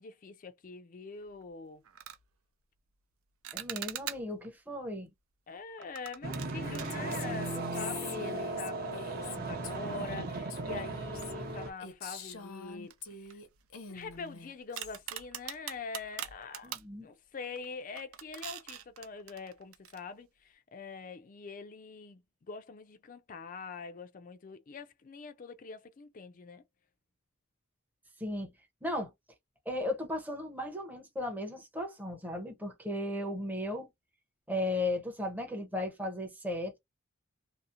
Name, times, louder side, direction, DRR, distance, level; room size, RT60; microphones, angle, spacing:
voice 1, 0.0-1.8 5.5-13.4 13.9-16.7 17.0-22.2 22.5-26.6, left 4 dB, 40° left, 0.4 m, -44 dB
sound 1, 1.2-1.4 1.8-2.2 3.4-4.5 5.8-8.2 8.4-8.6 9.3-9.4 11.2-11.9 12.2-12.3 12.9-14.3 14.8-16.9 17.4-17.7 18.0-20.0, right 11 dB, 85° right, 0.5 m, -43 dB
voice 2, 3.5-5.1 16.6-17.1 28.2-28.5 28.8-29.1 29.7-33.9 34.5-36.8, left 1 dB, 10° right, 0.7 m, -35 dB
sound 2, 6.2-11.7, right 2 dB, 45° right, 0.7 m, -37 dB
Female speech woman speaking, 6.6-13.5 13.7-15.0, left 5 dB, 85° left, 0.7 m, -46 dB
2.8 x 2.0 x 2.4 m
head